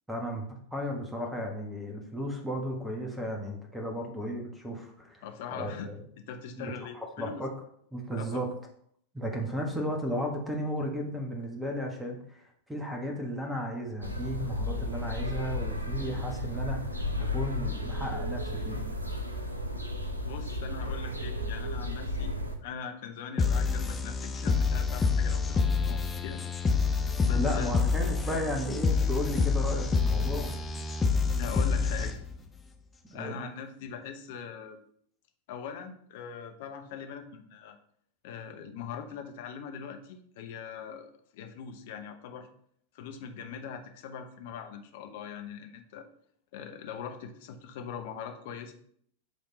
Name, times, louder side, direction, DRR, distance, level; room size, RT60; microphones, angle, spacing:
voice 1, 0.1-5.2 5.5-6.0 6.6-7.5 7.9-8.5 9.1-18.8 27.3-30.5 33.1-33.4, equal, 5° right, 1 dB, 1.4 m, -34 dB
voice 2, 5.2-5.9 6.3-7.4 8.2-8.4 20.2-26.4 27.2-27.7 28.2-28.4 31.4-32.2 33.1-34.8 35.5-37.8 38.2-42.5 42.9-46.1 46.5-48.7, left 7 dB, 50° left, 5 dB, 0.8 m, -41 dB
sound 1, 14.0-22.5, left 1 dB, 85° right, 0.7 m, -33 dB
sound 2, 23.4-32.4, left 4 dB, 15° left, 0.7 m, -27 dB
8.0 x 3.5 x 4.2 m, 0.65 s
figure-of-eight pair, 90°, 0 cm